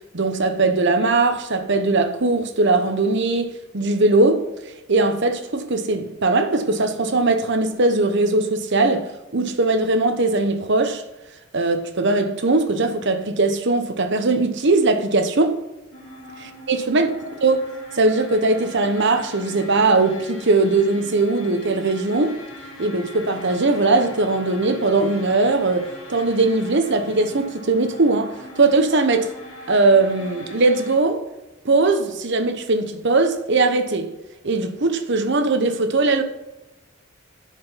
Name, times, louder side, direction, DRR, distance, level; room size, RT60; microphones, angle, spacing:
voice 1, 0.1-4.5 4.9-11.0 11.5-15.6 16.7-17.6 17.9-22.4 22.8-29.3 29.7-31.2 31.6-34.1 34.4-36.2, right 3 dB, 55° right, 1.0 m, -20 dB
sound 1, 15.9-31.0, left 1 dB, 65° left, 3.2 m, -41 dB
11.0 x 5.1 x 5.7 m
head